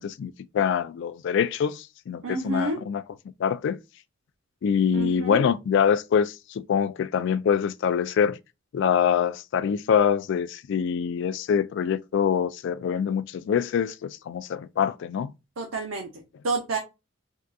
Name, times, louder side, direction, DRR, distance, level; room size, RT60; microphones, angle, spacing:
voice 1, 0.0-3.0 3.4-3.8 4.6-8.4 8.7-15.3, left 7 dB, 60° left, 0.3 m, -25 dB
voice 2, 2.2-2.8 4.9-5.5 15.6-16.8, right 3 dB, 75° right, 0.6 m, -29 dB
3.6 x 2.3 x 2.6 m
head